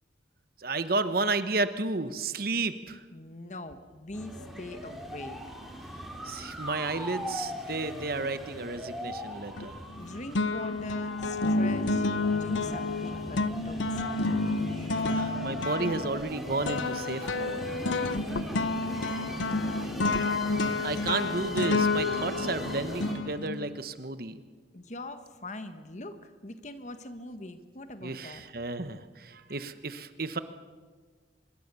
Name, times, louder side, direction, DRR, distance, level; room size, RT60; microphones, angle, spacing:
voice 1, 0.6-3.0 6.2-9.8 11.6-11.7 15.0-17.6 20.8-24.4 28.0-30.4, right 3 dB, 50° right, 11 dB, 1.1 m, -32 dB
voice 2, 3.1-5.4 10.0-14.3 18.3-19.2 19.5-19.6 24.7-28.4, left 2 dB, 40° left, 9 dB, 1.5 m, -42 dB
sound 1, 4.1-23.1, equal, ahead, 3.9 m, -40 dB
sound 2, 9.6-10.0 10.4-23.8, left 3 dB, 85° left, 0.8 m, -30 dB
25.0 x 22.0 x 6.9 m, 1.4 s
head